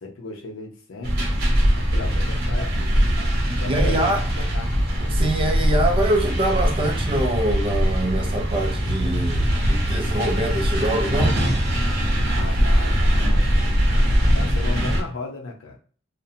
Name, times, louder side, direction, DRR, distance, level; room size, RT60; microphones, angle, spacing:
voice 1, 0.0-1.2 1.7-2.9 3.6-4.8 12.2-15.8, left 3 dB, 75° left, 0.6 m, -36 dB
sound 1, 1.0-15.0, equal, 50° right, 0.8 m, -21 dB
voice 2, 3.6-4.2 5.1-11.4, right 1 dB, 25° right, 0.4 m, -24 dB
sound 2, 4.7-4.8 5.2-6.6 7.5-8.5 8.9-10.3 10.7-11.1, right 4 dB, 85° right, 0.5 m, -36 dB
2.6 x 2.1 x 2.7 m
head